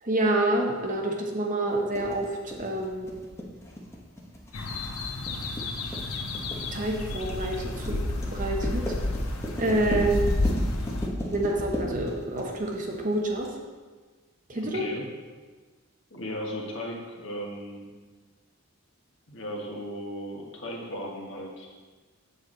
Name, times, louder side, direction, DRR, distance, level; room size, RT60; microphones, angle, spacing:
voice 1, 0.0-3.1 6.7-8.0 8.3-9.0 9.6-10.2 11.3-13.5 14.5-14.8, right 2 dB, 40° right, 0 dB, 1.0 m, -28 dB
sound 1, 1.9-13.5, equal, 15° left, 1.1 m, -35 dB
sound 2, 4.5-11.1, left 2 dB, 85° left, 0.9 m, -30 dB
voice 2, 9.7-10.1 14.5-15.1 16.1-17.9 19.3-21.7, equal, 60° left, -1 dB, 1.5 m, -36 dB
8.0 x 7.1 x 3.9 m, 1.4 s
head